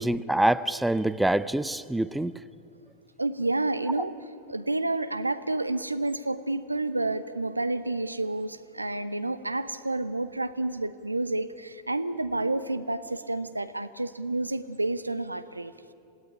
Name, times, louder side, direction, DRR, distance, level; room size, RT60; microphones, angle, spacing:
voice 1, 0.0-2.4, right 1 dB, 5° right, 16 dB, 0.6 m, -25 dB
voice 2, 3.2-4.1 4.5-15.7, right 2 dB, 85° right, 12 dB, 1.0 m, -29 dB
27.0 x 17.5 x 9.9 m, 2.6 s
figure-of-eight pair, 90°, 0 cm